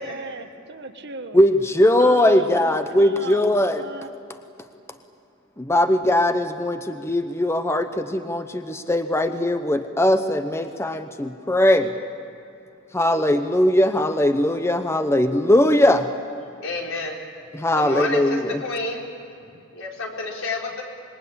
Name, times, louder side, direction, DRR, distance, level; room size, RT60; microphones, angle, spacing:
voice 1, 0.0-1.4 2.0-4.1, right 3 dB, 55° right, 7 dB, 1.4 m, -37 dB
voice 2, 1.3-3.8 5.6-11.9 12.9-16.1 17.6-18.6, left 1 dB, 15° left, 8 dB, 0.9 m, -20 dB
voice 3, 16.6-17.2 17.8-19.1 19.4-20.8, left 3 dB, 80° left, -1 dB, 4.4 m, -30 dB
26.5 x 22.0 x 8.6 m, 2.7 s
head